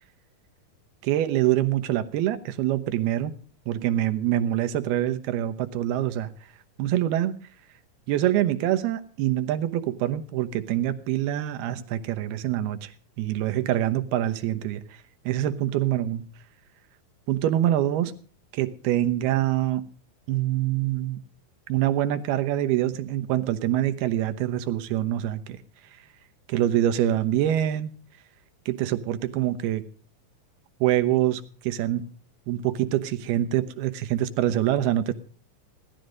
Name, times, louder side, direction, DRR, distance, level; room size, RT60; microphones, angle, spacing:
voice 1, 1.0-3.3 3.7-6.3 6.8-7.4 8.1-12.9 13.2-14.8 15.3-16.2 17.3-18.1 18.5-19.9 20.3-21.2 21.7-25.6 26.5-27.9 28.7-29.8 30.8-32.1 32.5-35.1, right 12 dB, 90° right, 9 dB, 3.1 m, -25 dB
17.5 x 13.0 x 5.2 m, 0.41 s
omnidirectional pair, 4.4 m